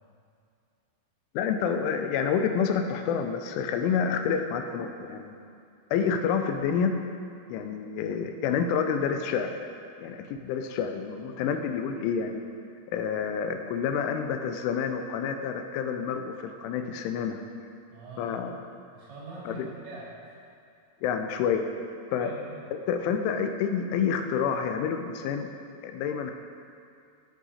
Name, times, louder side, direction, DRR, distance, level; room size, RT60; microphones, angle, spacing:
voice 1, 1.3-5.4 5.9-6.9 7.5-9.6 10.0-12.4 12.9-17.4 18.2-18.5 19.5-19.7 21.0-21.6 22.1-22.3 22.9-25.5 25.8-26.3, left 7 dB, 80° left, 6 dB, 2.9 m, -28 dB
voice 2, 17.9-18.4 18.9-20.4 22.2-22.6, right 3 dB, 60° right, -8 dB, 4.9 m, -43 dB
12.0 x 7.4 x 4.2 m, 2.4 s
omnidirectional pair, 5.9 m